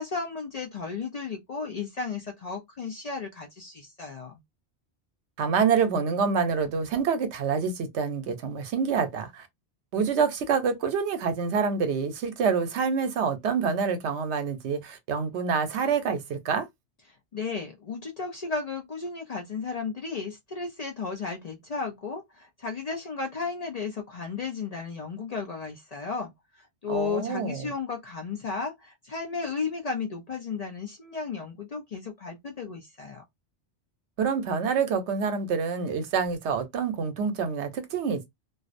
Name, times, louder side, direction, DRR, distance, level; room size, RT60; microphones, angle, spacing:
voice 1, 0.0-4.4 17.3-33.2, left 5 dB, 50° left, 0.5 m, -34 dB
voice 2, 5.4-9.5 9.9-16.6 26.9-27.7 34.2-38.2, right 6 dB, 80° right, 0.9 m, -27 dB
2.4 x 2.0 x 2.5 m
omnidirectional pair, 1.1 m